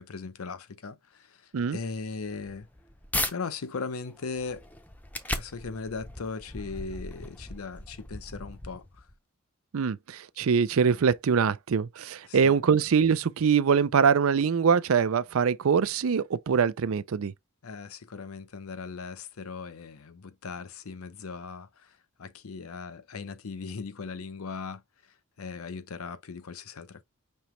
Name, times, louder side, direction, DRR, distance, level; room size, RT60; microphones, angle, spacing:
voice 1, 0.0-2.7 3.3-4.7 5.3-9.1 12.2-12.6 17.6-27.0, left 4 dB, 85° left, 0.7 m, -38 dB
sound 1, 2.4-3.3 3.9-9.1, left 1 dB, 10° left, 0.5 m, -37 dB
voice 2, 9.7-17.3, right 6 dB, 75° right, 0.4 m, -23 dB
5.4 x 2.9 x 3.1 m
head